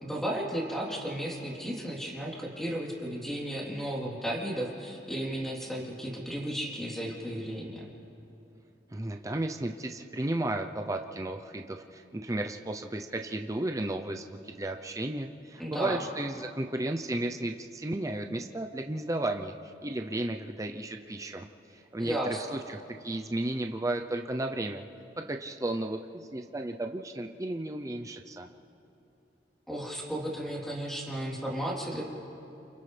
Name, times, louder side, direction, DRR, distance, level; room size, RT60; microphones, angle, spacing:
voice 1, 0.0-7.9 15.6-16.0 22.0-22.6 29.7-32.0, right 1 dB, ahead, -4 dB, 3.4 m, -34 dB
voice 2, 8.9-19.5 19.8-21.5 21.7-24.8 25.3-28.5, right 1 dB, 20° right, 4 dB, 0.6 m, -34 dB
29.5 x 27.5 x 3.4 m, 2.8 s
head